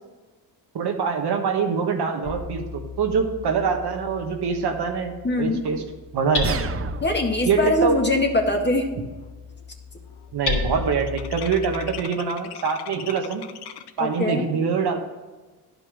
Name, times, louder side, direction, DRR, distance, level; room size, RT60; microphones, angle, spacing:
voice 1, 0.7-5.8 6.1-6.6 7.5-7.9 10.3-13.4 14.0-15.0, right 5 dB, 65° right, 4 dB, 1.4 m, -24 dB
Hammer, 2.2-12.0, left 4 dB, 45° left, 2.8 m, -34 dB
voice 2, 5.2-5.6 7.0-8.9 14.0-14.5, left 1 dB, 25° left, 2 dB, 1.8 m, -22 dB
sound 1, 6.4-7.4, right 6 dB, 35° right, 0.6 m, -30 dB
sound 2, 8.9-9.2 9.5-14.1, left 9 dB, 65° left, 0.8 m, -41 dB
11.0 x 5.4 x 6.3 m, 1.2 s
cardioid pair, 75°, 42 cm